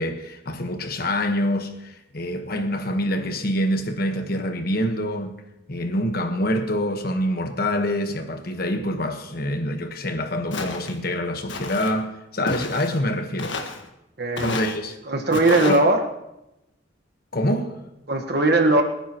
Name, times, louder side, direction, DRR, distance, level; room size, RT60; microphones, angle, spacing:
voice 1, 0.0-5.3 5.7-13.6 14.4-15.0 15.6-15.8 17.3-17.7, left 1 dB, 50° left, 1.3 m, -26 dB
Walk footsteps, 10.5-10.9 11.5-11.9 12.5-13.0 13.4-13.8 14.4-14.8 15.3-15.8, left 3 dB, 70° left, 1.5 m, -31 dB
voice 2, 14.2-14.5 15.1-16.0 18.1-18.8, right 2 dB, 55° right, 1.4 m, -19 dB
27.5 x 10.5 x 3.0 m
head